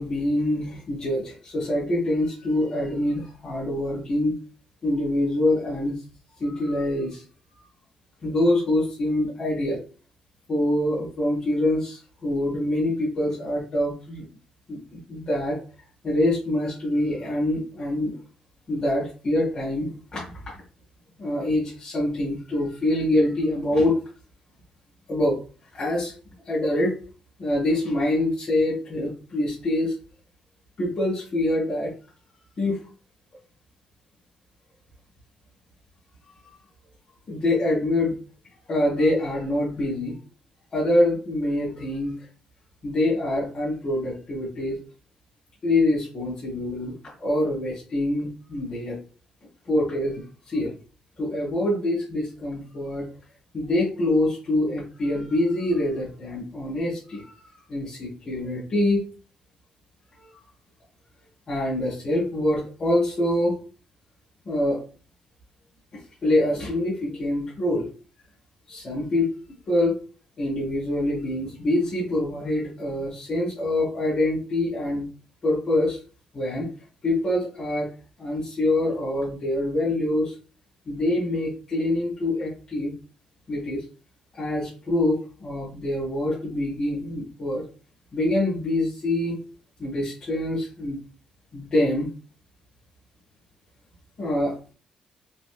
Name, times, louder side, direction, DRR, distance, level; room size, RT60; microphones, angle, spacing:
voice 1, 0.0-4.4 4.8-6.0 6.4-7.2 8.2-9.8 10.5-14.2 14.7-15.6 16.0-18.1 18.7-20.3 21.2-24.0 25.1-25.4 25.7-26.1 26.5-27.0 27.4-29.9 30.8-31.9 32.6-32.8 37.3-38.1 38.7-40.2 40.7-42.2 42.8-44.8 45.6-49.0 49.6-50.7 51.2-53.1 53.5-59.0 60.2-60.3 61.5-63.6 64.4-64.8 65.9-67.9 68.7-69.3 69.7-70.0 70.4-75.1 75.4-76.0 76.3-76.7 77.0-77.9 78.2-80.3 80.8-82.9 83.5-83.8 84.3-87.6 88.1-89.4 89.8-91.0 91.5-92.1 94.2-94.6, left 1 dB, 30° left, -8 dB, 1.6 m, -25 dB
4.2 x 2.5 x 2.4 m, 0.36 s
cardioid pair, 180°, 2 cm